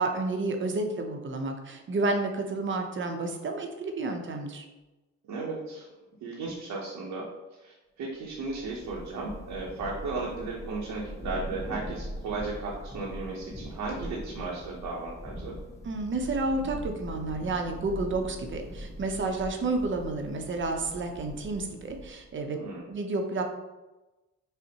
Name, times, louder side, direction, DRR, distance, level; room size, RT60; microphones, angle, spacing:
voice 1, 0.0-4.7 15.8-22.6 22.9-23.4, right 3 dB, 40° right, 4 dB, 0.6 m, -30 dB
voice 2, 5.2-5.9 6.2-15.6 22.4-22.9, right 3 dB, 80° right, -4 dB, 0.8 m, -35 dB
Thunder / Rain, 8.3-22.4, equal, 10° left, 0.7 m, -41 dB
5.3 x 2.1 x 2.8 m, 1.1 s
cardioid pair, 90°, 30 cm